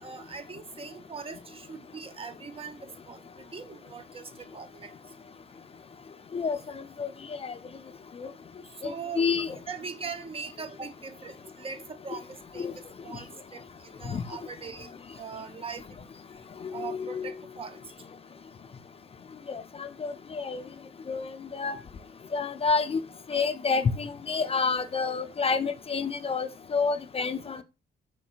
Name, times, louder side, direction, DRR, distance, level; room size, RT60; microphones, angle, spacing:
voice 1, 0.0-4.9 8.8-9.3 9.7-12.7 13.0-16.1 16.7-17.8, right 5 dB, 30° right, 0.4 m, -41 dB
voice 2, 8.8-9.6 12.6-12.7 14.1-14.2 16.8-17.3 19.5-20.6 21.1-21.8 22.3-23.0 23.3-27.6, left 5 dB, 30° left, 0.4 m, -29 dB
4.4 x 4.2 x 2.4 m
cardioid pair, 90°, 20 cm